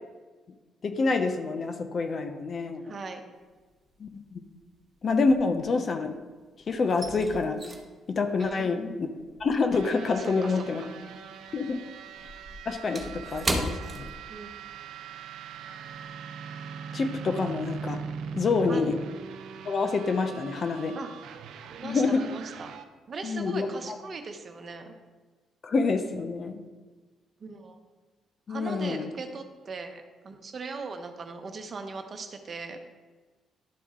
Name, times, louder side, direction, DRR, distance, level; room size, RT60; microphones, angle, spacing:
voice 1, 0.8-2.8 4.0-4.4 5.0-6.2 6.7-7.6 8.1-9.1 9.4-10.8 11.5-11.9 12.7-14.1 16.9-18.0 18.3-19.0 19.7-21.0 21.8-22.3 23.2-24.0 25.6-26.6 28.5-29.1, left 4 dB, 45° left, 8 dB, 0.7 m, -27 dB
voice 2, 2.8-3.2 8.4-8.7 10.2-10.6 14.3-14.6 18.7-18.9 20.9-21.1 21.7-22.7 23.1-24.9 27.4-27.8 28.5-32.8, right 4 dB, 45° right, 6 dB, 0.9 m, -39 dB
sound 1, 3.4-4.0 4.3-6.3 6.5-11.2 11.5-14.8 15.1-15.3 15.8-16.0, right 1 dB, 20° right, 1.1 m, -37 dB
sound 2, 9.7-22.9, right 6 dB, 80° right, 0.5 m, -41 dB
11.5 x 4.1 x 3.7 m, 1.3 s
cardioid pair, 90°, 0 cm